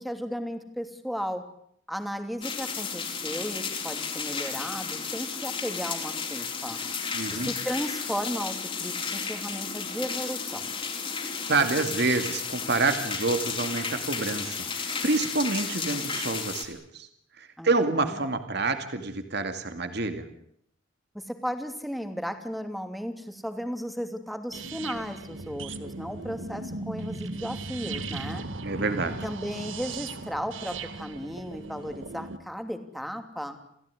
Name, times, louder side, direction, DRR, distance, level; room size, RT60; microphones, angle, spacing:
voice 1, 0.0-1.4 1.9-6.8 7.3-10.7 17.6-17.7 18.0-18.1 21.1-28.5 29.2-33.6, equal, ahead, 6 dB, 2.8 m, -35 dB
sound 1, 2.4-16.6, left 5 dB, 30° left, 4.1 m, -33 dB
voice 2, 7.1-7.5 11.5-17.1 17.4-20.3 28.6-29.2, right 3 dB, 60° right, 8 dB, 2.4 m, -28 dB
sound 2, 24.5-32.4, right 3 dB, 85° right, 1.8 m, -37 dB
29.0 x 17.0 x 10.0 m, 0.71 s
head